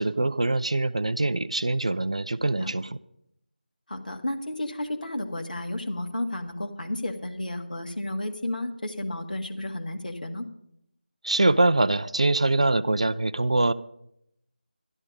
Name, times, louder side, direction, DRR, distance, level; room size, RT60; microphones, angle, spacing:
voice 1, 0.0-3.0 11.2-13.7, right 2 dB, 40° right, 15 dB, 0.4 m, -23 dB
voice 2, 3.9-10.5, left 1 dB, 55° left, 3 dB, 1.7 m, -32 dB
12.0 x 12.0 x 5.3 m, 0.77 s
figure-of-eight pair, 165°, 5 cm